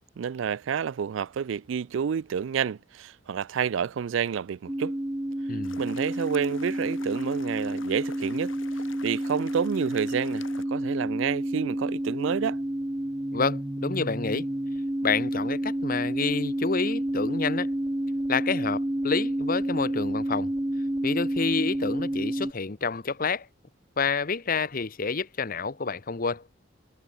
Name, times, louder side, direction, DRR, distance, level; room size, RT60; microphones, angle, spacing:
voice 1, 0.2-5.0 5.8-8.5 9.0-12.6, right 7 dB, 70° right, 0.4 m, -29 dB
sound 1, 4.7-22.5, right 1 dB, 10° right, 0.6 m, -30 dB
voice 2, 5.5-5.8 13.3-14.5 15.0-17.7 18.3-20.5 21.0-23.5 24.0-26.4, left 4 dB, 45° left, 0.9 m, -28 dB
sound 2, 5.6-10.6, left 4 dB, 70° left, 4.1 m, -47 dB
head